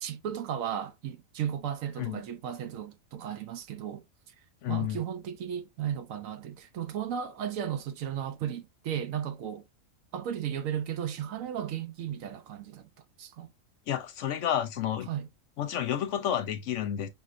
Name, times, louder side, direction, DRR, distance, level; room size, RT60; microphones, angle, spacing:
voice 1, 0.0-4.0 4.7-9.6 10.1-12.9 13.2-13.5 15.1-15.3, right 9 dB, 75° right, 1.0 m, -35 dB
voice 2, 4.6-5.0 13.9-15.1 15.6-17.1, left 10 dB, 70° left, 0.9 m, -30 dB
5.4 x 3.1 x 2.5 m
omnidirectional pair, 1.4 m